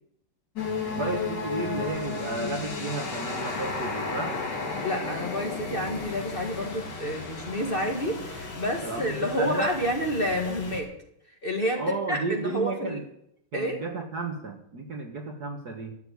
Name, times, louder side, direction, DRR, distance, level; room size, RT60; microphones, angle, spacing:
sound 1, 0.5-10.8, left 3 dB, 50° left, 2.7 m, -34 dB
voice 1, 0.9-4.4 8.8-9.7 11.8-13.0 13.5-15.9, right 3 dB, 50° right, 2 dB, 1.8 m, -33 dB
voice 2, 4.8-10.9 11.4-11.8 12.1-13.0 13.5-13.8, equal, 25° left, 2 dB, 1.7 m, -29 dB
14.0 x 7.0 x 9.5 m, 0.75 s
omnidirectional pair, 2.4 m